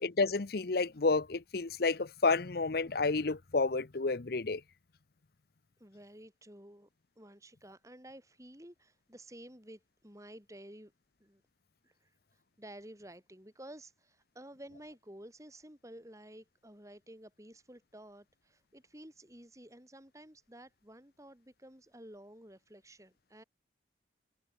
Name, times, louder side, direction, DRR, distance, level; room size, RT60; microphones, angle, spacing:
voice 1, 0.0-4.6, left 3 dB, 55° left, 0.8 m, -30 dB
voice 2, 5.8-6.9 7.2-10.9 11.2-11.4 11.8-23.4, right 1 dB, 15° right, 5.3 m, -52 dB
head